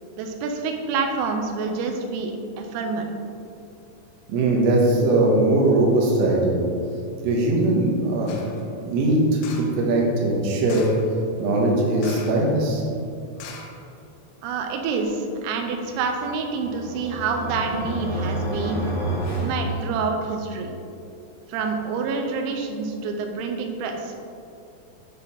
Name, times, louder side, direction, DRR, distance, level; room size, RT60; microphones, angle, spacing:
voice 1, 0.2-3.1 14.4-18.8 19.4-20.7 21.5-24.2, right 4 dB, 90° right, 3 dB, 3.4 m, -27 dB
voice 2, 4.3-6.6 7.2-8.4 8.8-10.9 11.4-12.8, right 2 dB, 70° right, -2 dB, 3.1 m, -20 dB
sound 1, 8.3-8.6 9.4-9.8 10.7-11.1 12.0-12.5 12.7-12.8 13.4-14.2 14.7-14.8, left 4 dB, 90° left, 3.6 m, -41 dB
sound 2, 16.1-20.4, right 1 dB, 70° left, 1.3 m, -30 dB
10.0 x 4.9 x 4.2 m, 2.5 s
omnidirectional pair, 5.9 m